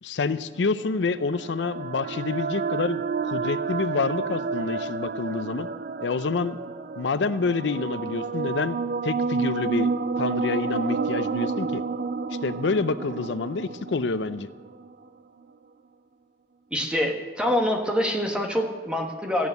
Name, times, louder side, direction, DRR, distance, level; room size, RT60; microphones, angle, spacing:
voice 1, 0.0-5.7 6.0-6.6 7.0-9.9 10.2-11.8 12.4-14.5, left 4 dB, 85° left, 14 dB, 0.5 m, -27 dB
sound 1, 0.8-14.9, right 4 dB, 55° right, 0.5 m, -30 dB
voice 2, 16.7-19.5, left 1 dB, 5° right, 3 dB, 1.5 m, -25 dB
14.0 x 9.4 x 8.1 m, 1.4 s
head